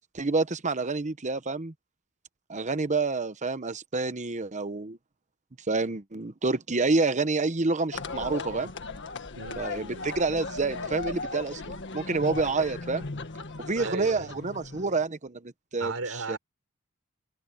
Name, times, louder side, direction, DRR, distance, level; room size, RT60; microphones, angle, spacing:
voice 1, 0.1-1.7 2.5-5.0 5.7-8.7 9.6-13.1 13.6-16.4, right 3 dB, 35° right, 0.9 m, -28 dB
sound 1, 7.9-15.1, left 3 dB, 55° left, 1.7 m, -37 dB
voice 2, 9.4-10.1 13.7-14.4 15.8-16.4, right 3 dB, 70° right, 5.1 m, -36 dB
head